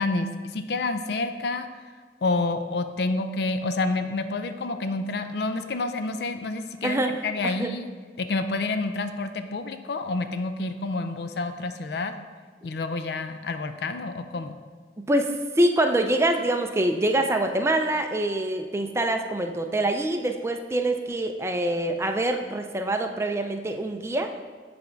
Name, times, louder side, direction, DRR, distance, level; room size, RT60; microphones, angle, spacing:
voice 1, 0.0-1.7 2.2-7.9 8.2-12.1 12.6-14.5, left 3 dB, 65° left, 8 dB, 0.4 m, -28 dB
voice 2, 6.8-7.7 15.0-24.3, right 1 dB, 15° right, 5 dB, 0.4 m, -25 dB
8.3 x 3.4 x 5.1 m, 1.5 s
head